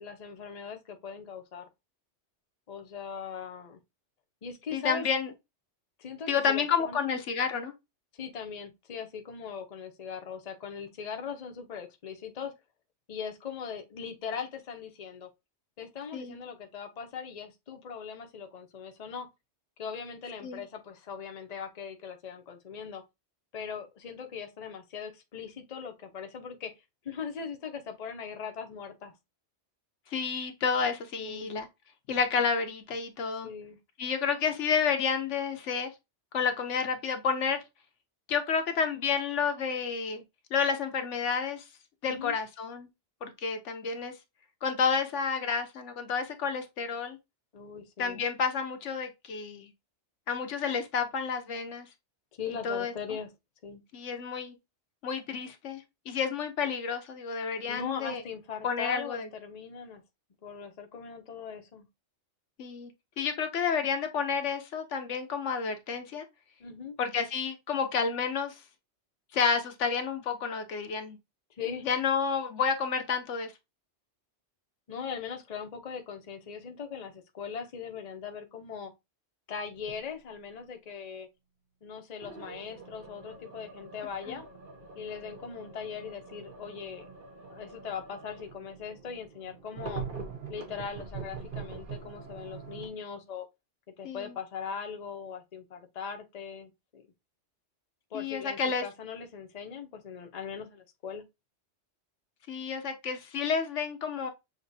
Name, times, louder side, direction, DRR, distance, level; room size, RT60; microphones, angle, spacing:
voice 1, 0.0-1.6 2.7-3.8 4.4-5.1 6.0-7.1 8.2-12.5 13.1-15.3 15.8-19.3 19.8-23.0 23.5-26.7 27.0-29.1 31.2-31.5 33.4-33.8 42.0-42.4 47.5-48.2 52.3-53.3 53.6-53.8 57.7-60.0 60.4-61.9 66.6-67.0 71.6-71.9 74.9-78.9 79.5-81.3 81.8-84.5 84.9-87.1 87.5-90.0 90.5-93.5 94.0-97.0 98.1-101.2, left 6 dB, 40° left, 0.7 m, -40 dB
voice 2, 4.7-5.3 6.3-7.7 16.1-16.4 20.4-20.6 30.1-31.7 32.1-33.5 34.0-35.9 36.3-37.6 38.3-40.2 40.5-41.6 42.0-42.9 43.2-44.2 44.6-47.2 48.0-49.7 50.3-51.9 52.6-52.9 53.9-54.6 55.0-58.2 58.6-59.3 62.6-62.9 63.2-66.2 67.0-68.6 69.3-71.2 71.8-73.5 84.3-84.4 94.0-94.3 98.1-98.8 102.5-104.3, left 6 dB, 85° left, 1.1 m, -30 dB
sound 1, 79.7-80.0 82.2-92.9, right 5 dB, 50° right, 1.2 m, -44 dB
6.5 x 2.9 x 2.6 m
omnidirectional pair, 1.2 m